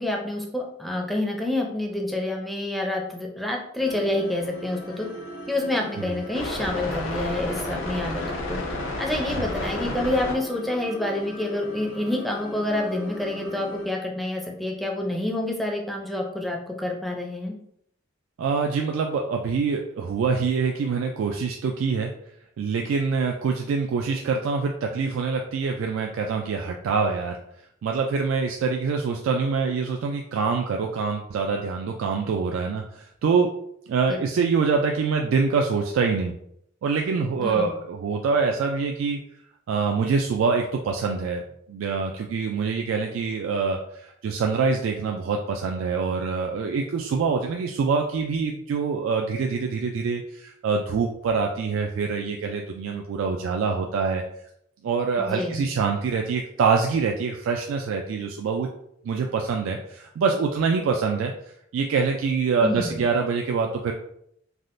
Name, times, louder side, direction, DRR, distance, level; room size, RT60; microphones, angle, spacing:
voice 1, 0.0-5.1 5.5-8.2 8.5-8.6 9.0-17.5 34.4-34.5 37.4-37.7 55.2-55.6 62.6-63.0, left 1 dB, ahead, 0 dB, 0.4 m, -28 dB
sound 1, 3.8-13.9, left 1 dB, 90° left, 0.7 m, -33 dB
voice 2, 18.4-22.1 22.6-27.4 27.8-33.5 33.9-36.3 36.8-39.2 39.7-41.4 41.7-54.2 54.8-58.7 59.0-63.9, right 5 dB, 80° right, 2 dB, 0.3 m, -25 dB
3.4 x 2.4 x 2.5 m, 0.73 s
head